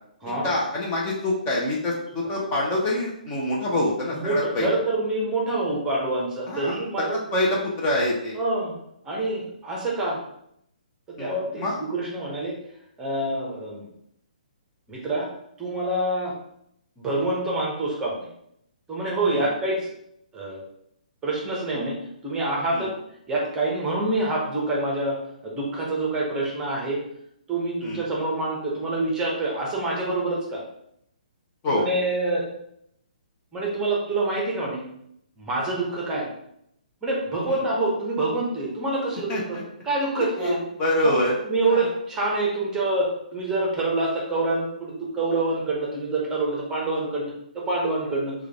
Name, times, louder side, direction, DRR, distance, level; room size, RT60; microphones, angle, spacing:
voice 1, 0.4-4.7 6.5-6.8 7.1-8.4 11.2-11.7 19.3-19.5 22.7-22.9 27.8-28.0 31.6-31.9 37.5-37.6 39.3-39.6 40.4-41.4 41.7-41.9, left 1 dB, 25° left, -3 dB, 0.8 m, -26 dB
voice 2, 4.1-7.2 8.3-8.8 9.0-10.2 11.1-12.5 13.0-13.9 14.9-15.3 15.6-16.3 17.0-18.3 18.9-19.9 20.3-20.6 21.2-21.9 22.2-22.9 23.3-25.2 25.4-27.0 27.5-30.6 31.7-32.5 33.5-34.8 35.4-36.3 37.0-39.6 39.8-40.6 41.0-41.2 41.5-48.3, right 2 dB, 10° right, -3 dB, 0.9 m, -26 dB
4.9 x 2.4 x 3.5 m, 0.75 s
figure-of-eight pair, 130°, 5 cm